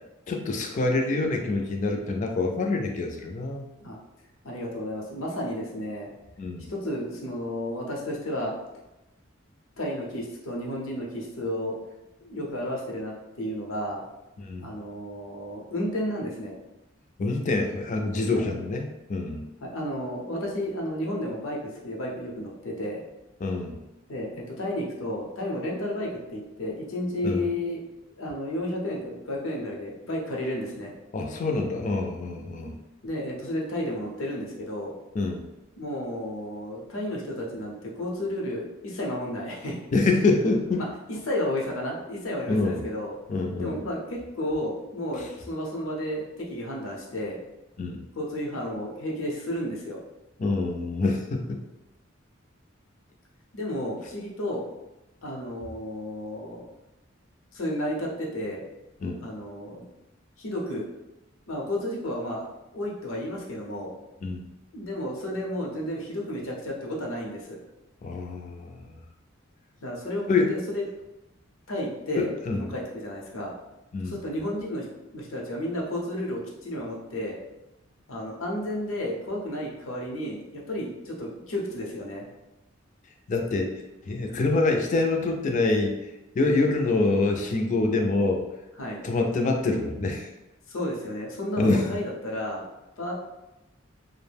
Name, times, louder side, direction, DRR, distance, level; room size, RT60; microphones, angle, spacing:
voice 1, 0.3-3.7 6.4-6.7 14.4-14.7 17.2-19.4 23.4-23.8 27.2-27.4 31.1-32.7 35.1-35.4 39.9-40.8 42.5-42.8 43.3-43.8 45.2-45.3 47.8-48.0 50.4-51.6 59.0-59.2 64.2-64.4 68.0-69.0 70.3-70.5 72.2-72.6 73.9-74.1 83.3-85.9 86.4-88.4 89.0-90.3 91.6-91.9, left 3 dB, 40° left, 2 dB, 0.4 m, -26 dB
voice 2, 4.4-6.1 6.7-8.6 9.8-11.8 12.2-14.0 14.6-16.5 18.3-18.4 19.6-23.0 24.1-27.8 28.2-30.9 33.0-34.9 35.8-39.8 40.8-43.1 43.6-47.4 48.1-50.0 53.5-54.6 55.2-56.6 57.5-58.6 59.2-59.9 60.4-60.9 61.5-62.5 62.7-63.9 64.7-67.6 69.8-70.8 71.7-73.5 74.0-74.9 75.1-77.4 78.1-82.3 88.8-89.0 90.7-92.6 93.0-93.1, left 1 dB, 85° left, -2 dB, 0.7 m, -32 dB
2.4 x 2.0 x 3.3 m, 0.97 s
head